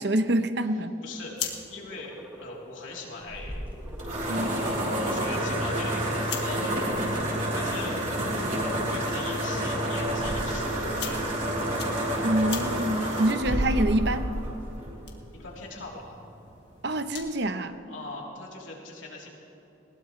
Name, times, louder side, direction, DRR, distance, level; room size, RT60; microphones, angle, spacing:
voice 1, 0.0-0.9 4.3-4.9 12.2-14.2 16.8-17.8, right 1 dB, 60° right, 10 dB, 0.8 m, -26 dB
voice 2, 1.0-1.3 1.7-3.6 4.2-6.9 7.5-8.0 8.6-11.2 12.9-13.6 15.3-16.2 17.9-19.3, left 3 dB, 85° left, -3 dB, 3.3 m, -41 dB
sound 1, 1.0-17.5, left 7 dB, 60° left, 2.0 m, -44 dB
sound 2, 1.6-2.5 3.0-3.2 3.5-4.8 5.1-6.3 6.9-7.4 8.0-8.7 9.0-9.5 10.4-11.7, right 1 dB, 10° right, 1.8 m, -45 dB
sound 3, 3.3-15.1, right 1 dB, 40° right, 3.7 m, -29 dB
20.5 x 19.5 x 3.2 m, 2.8 s
head